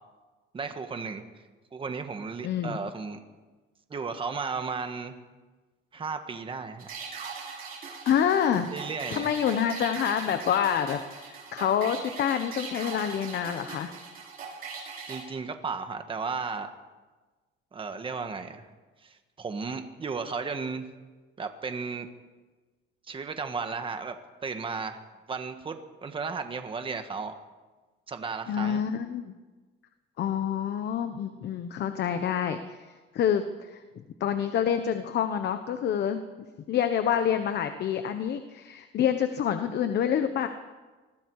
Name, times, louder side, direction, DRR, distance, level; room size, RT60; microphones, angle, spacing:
voice 1, 0.5-1.2 1.7-3.2 3.9-5.1 5.9-6.9 8.7-9.3 15.1-16.7 17.7-18.7 19.0-20.9 21.4-22.1 23.1-24.2 24.4-25.0 25.3-27.3 28.1-28.8, right 5 dB, 25° right, 7 dB, 1.6 m, -34 dB
voice 2, 2.4-2.8 8.0-8.7 9.1-13.9 28.5-29.3 30.2-32.9 33.1-33.8 34.2-36.2 36.7-40.5, left 9 dB, 55° left, 8 dB, 1.1 m, -27 dB
sound 1, 6.8-15.2, right 5 dB, 45° right, 6.3 m, -40 dB
26.5 x 21.0 x 4.9 m, 1.3 s
cardioid pair, 155°, 21 cm